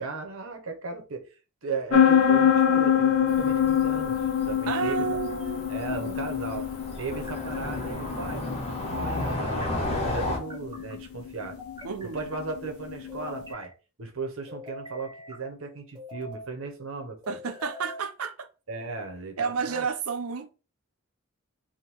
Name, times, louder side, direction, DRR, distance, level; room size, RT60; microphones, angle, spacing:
voice 1, 0.0-1.3 1.6-5.0 5.7-6.7 7.0-8.4 8.8-11.6 12.0-13.7 14.0-17.4 18.7-19.9, right 4 dB, 70° right, 0.9 m, -36 dB
sound 1, 1.9-13.4, left 8 dB, 75° left, 0.4 m, -26 dB
Cricket / Motor vehicle (road), 3.3-10.4, left 1 dB, 30° left, 0.9 m, -34 dB
sound 2, 3.4-4.1 5.5-6.2 7.1-7.8 8.9-9.7 10.3-11.0 11.6-12.4 13.1-13.7 14.5-15.4 15.9-16.5 17.2-18.0, equal, 20° right, 1.2 m, -43 dB
voice 2, 4.7-5.6 5.9-6.2 11.8-12.2 17.3-18.5 19.4-20.5, right 5 dB, 85° right, 0.6 m, -31 dB
3.6 x 2.3 x 4.5 m
head